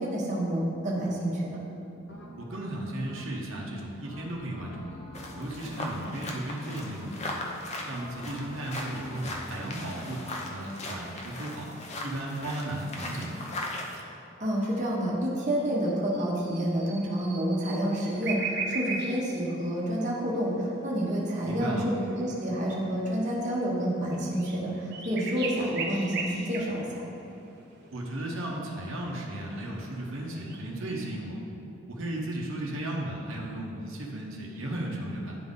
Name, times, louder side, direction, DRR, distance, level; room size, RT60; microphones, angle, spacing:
voice 1, 0.0-1.6 14.4-27.0, right 1 dB, 40° right, -4 dB, 1.1 m, -29 dB
sound 1, 2.1-2.6 3.1-3.6 4.0-6.5 6.9-7.5 7.9-9.8, left 1 dB, 60° left, 1.0 m, -46 dB
voice 2, 2.4-5.0 5.3-7.4 7.9-11.7 12.0-13.4 21.5-21.9 27.9-31.4 31.9-35.4, right 1 dB, 85° right, -2 dB, 0.9 m, -35 dB
sound 2, 5.1-14.0, left 1 dB, 35° left, 0.7 m, -39 dB
sound 3, 15.6-31.1, right 4 dB, 55° right, 0.8 m, -40 dB
10.5 x 3.9 x 3.7 m, 2.7 s
head